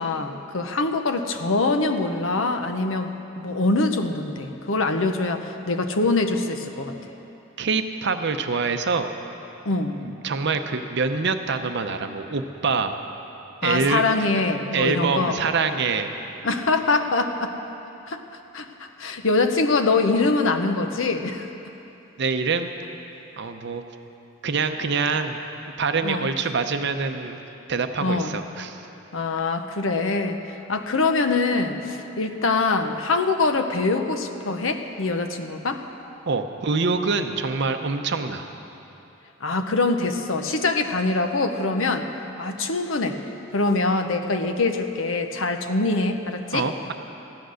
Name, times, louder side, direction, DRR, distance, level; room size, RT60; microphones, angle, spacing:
voice 1, 0.0-7.0 9.6-10.0 13.6-15.4 16.4-17.5 18.1-18.2 18.5-21.5 26.0-26.3 28.0-28.3 29.1-35.8 39.4-42.1 42.4-43.2 43.5-46.7, left 3 dB, 80° left, 6 dB, 0.9 m, -24 dB
voice 2, 7.6-9.1 10.0-13.0 13.6-14.0 14.7-16.1 22.2-22.7 23.4-23.8 24.4-25.4 25.8-27.4 27.7-28.9 36.2-38.4 46.5-46.9, right 4 dB, 60° right, 7 dB, 0.7 m, -25 dB
14.5 x 10.5 x 6.4 m, 3.0 s
head